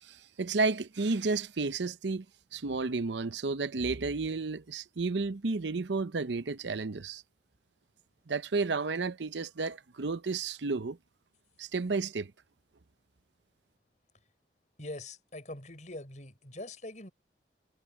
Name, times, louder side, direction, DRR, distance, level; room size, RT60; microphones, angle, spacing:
voice 1, 0.0-2.2 2.5-7.2 8.3-11.0 11.6-12.3, right 3 dB, 80° right, 0.7 m, -32 dB
voice 2, 14.8-17.1, left 1 dB, 45° left, 6.3 m, -43 dB
head